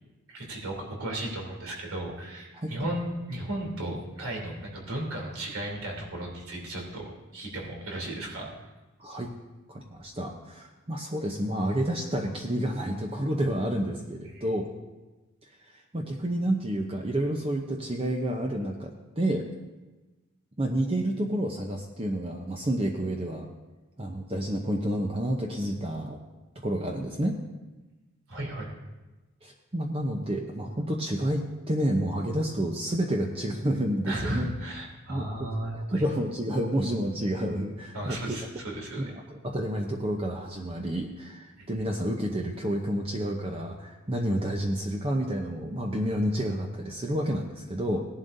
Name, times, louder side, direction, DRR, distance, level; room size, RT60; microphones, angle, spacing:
voice 1, 0.3-8.5 14.3-14.4 28.3-28.7 34.1-36.0 37.9-39.2 41.6-41.7, right 1 dB, 80° right, -1 dB, 3.1 m, -35 dB
voice 2, 9.0-9.3 9.7-14.7 15.6-19.5 20.6-23.5 24.0-26.2 26.6-27.3 29.4-34.5 35.1-35.5 35.9-38.3 39.2-48.1, right 1 dB, 25° right, 1 dB, 0.8 m, -29 dB
17.5 x 11.5 x 2.7 m, 1.1 s
head